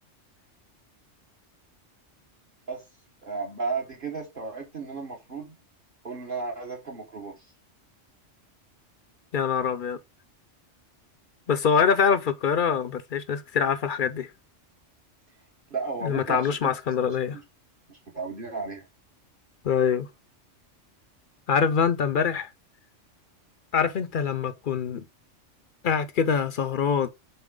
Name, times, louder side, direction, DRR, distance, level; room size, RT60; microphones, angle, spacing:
voice 1, 3.2-5.6 6.0-7.5 15.7-16.6 17.0-17.4 17.9-18.9, right 4 dB, 45° right, 1.3 m, -34 dB
voice 2, 9.3-10.0 11.5-14.3 16.0-17.4 19.6-20.1 21.5-22.5 23.7-25.0 25.8-27.1, left 6 dB, 55° left, 0.6 m, -24 dB
6.9 x 4.2 x 3.7 m
omnidirectional pair, 1.3 m